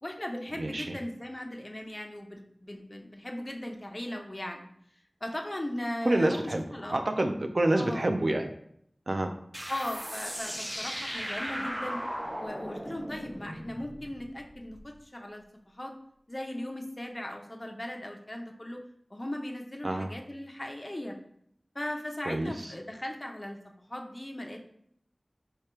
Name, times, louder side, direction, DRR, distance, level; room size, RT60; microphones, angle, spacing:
voice 1, 0.0-4.7 5.2-7.2 7.7-8.1 9.7-12.0 12.3-15.9 16.3-18.8 19.1-21.2 21.7-24.6, left 1 dB, 35° left, 2 dB, 0.6 m, -38 dB
voice 2, 0.6-0.9 6.1-6.6 6.9-8.5 9.1-9.3 19.8-20.1 22.3-22.5, right 1 dB, 65° right, 5 dB, 0.4 m, -27 dB
sound 1, 9.5-14.8, equal, 10° right, 0.6 m, -37 dB
4.8 x 2.2 x 4.3 m, 0.69 s
wide cardioid pair, 50°, 0 cm